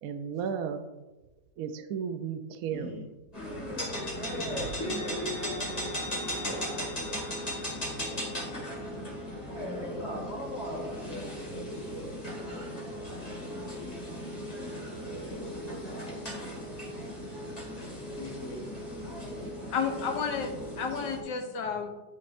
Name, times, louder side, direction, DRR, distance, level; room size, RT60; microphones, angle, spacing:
voice 1, 0.0-0.8 1.6-3.0 4.6-4.7, right 7 dB, 70° right, 7 dB, 0.9 m, -34 dB
voice 2, 2.7-3.0 4.3-5.3 6.4-7.2 9.6-10.1 10.7-12.8 13.5-16.5 18.2-18.6 19.1-19.4, equal, 55° left, -4 dB, 2.2 m, -43 dB
sound 1, 3.3-21.2, equal, 20° left, 1.8 m, -37 dB
voice 3, 19.7-20.5 20.8-21.9, left 6 dB, 75° left, 4 dB, 1.5 m, -31 dB
9.7 x 5.5 x 2.6 m, 1.1 s
omnidirectional pair, 2.0 m